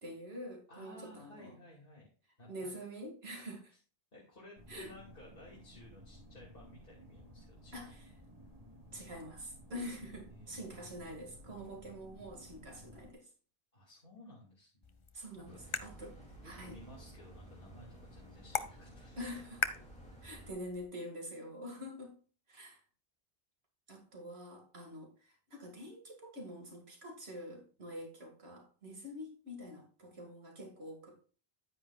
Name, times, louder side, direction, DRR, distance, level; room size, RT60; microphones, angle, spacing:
voice 1, 0.0-1.6 2.5-3.7 4.7-4.9 7.7-8.1 8.9-13.3 15.1-16.1 16.4-16.8 19.2-19.7 20.2-22.2 22.5-22.8 23.9-31.3, equal, 85° right, 1 dB, 2.4 m, -46 dB
voice 2, 0.7-2.1 2.4-2.7 4.1-8.0 10.3-10.7 13.7-15.0 15.3-16.1 16.4-19.3, left 1 dB, 65° left, -4 dB, 2.5 m, -56 dB
sound 1, 4.5-13.1, equal, 40° right, 2.0 m, -56 dB
sound 2, 14.8-20.8, left 5 dB, 35° left, 0.6 m, -43 dB
sound 3, 15.5-20.5, right 1 dB, 5° left, 2.8 m, -54 dB
9.8 x 9.6 x 2.4 m, 0.38 s
omnidirectional pair, 1.0 m